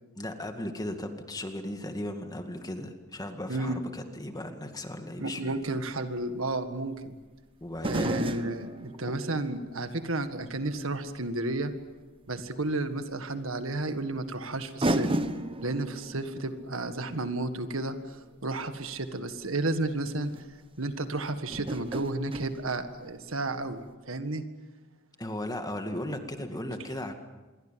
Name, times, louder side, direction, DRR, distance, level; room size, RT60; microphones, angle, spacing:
voice 1, 0.2-5.5 7.6-8.2 9.0-9.1 25.2-27.1, left 1 dB, 20° left, 6 dB, 2.2 m, -36 dB
voice 2, 3.5-3.8 5.2-7.2 7.8-11.7 12.3-15.1 15.6-18.0 18.4-20.3 20.8-24.4, right 2 dB, 70° right, 9 dB, 1.8 m, -32 dB
sound 1, 5.6-5.7 7.8-10.8 11.2-11.3 12.8-12.9 14.2-14.3 14.8-18.9 19.9-20.0 20.3-20.5 21.5-23.4 23.7-23.8, right 1 dB, 25° right, 1.2 m, -34 dB
26.5 x 23.0 x 7.7 m, 1.2 s
head